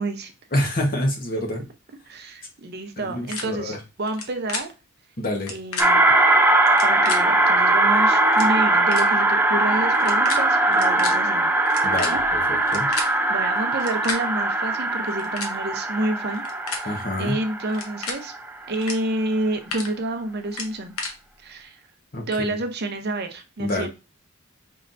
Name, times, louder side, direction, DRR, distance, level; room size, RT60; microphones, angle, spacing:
voice 1, 0.0-0.3 2.1-4.7 5.5-6.2 6.8-11.5 12.0-12.2 12.9-16.4 16.7-18.3 18.7-20.9 21.4-21.8 22.3-23.9, right 2 dB, 45° right, 6 dB, 0.6 m, -29 dB
voice 2, 0.5-1.6 3.0-3.8 5.2-5.5 11.8-12.9 16.8-17.4 22.1-22.6 23.6-23.9, left 1 dB, 40° left, 2 dB, 1.1 m, -27 dB
sound 1, 3.3-3.4 4.1-4.2 4.5-4.6 5.3-5.9 6.7-7.2 7.9-8.0 8.3-8.5 8.9-9.0 9.9-10.4 10.7-11.1 11.6-13.1 13.7-14.2 15.0-15.5 16.3-16.8 17.7-18.2 18.7-18.9 19.3-19.9 20.5-21.1, left 4 dB, 80° left, 1.1 m, -31 dB
sound 2, 5.8-18.5, right 2 dB, 10° right, 0.4 m, -20 dB
5.5 x 3.2 x 2.5 m, 0.29 s
head